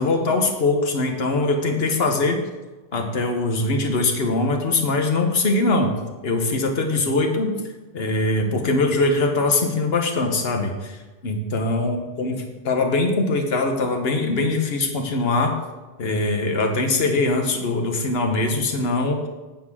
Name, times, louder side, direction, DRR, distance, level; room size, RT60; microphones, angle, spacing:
voice 1, 0.0-2.4 2.9-6.0 6.2-7.5 7.9-15.6 16.0-19.3, left 2 dB, 65° left, 4 dB, 1.4 m, -22 dB
9.8 x 4.4 x 7.4 m, 1.2 s
omnidirectional pair, 1.1 m